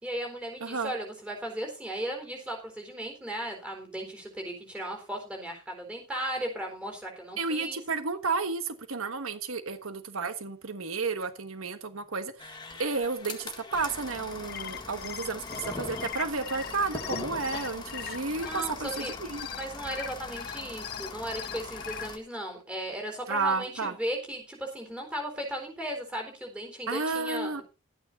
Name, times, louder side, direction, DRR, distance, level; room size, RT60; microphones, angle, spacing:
voice 1, 0.0-7.8 18.4-19.1 19.5-27.6, right 1 dB, 5° right, 2 dB, 4.1 m, -36 dB
voice 2, 0.6-0.9 7.4-19.5 23.3-23.9 26.9-27.6, right 4 dB, 85° right, 10 dB, 1.3 m, -32 dB
sound 1, 12.4-22.2, left 3 dB, 20° left, 1.9 m, -41 dB
sound 2, 14.3-22.1, left 9 dB, 45° left, 0.7 m, -40 dB
12.5 x 9.3 x 4.2 m, 0.30 s
head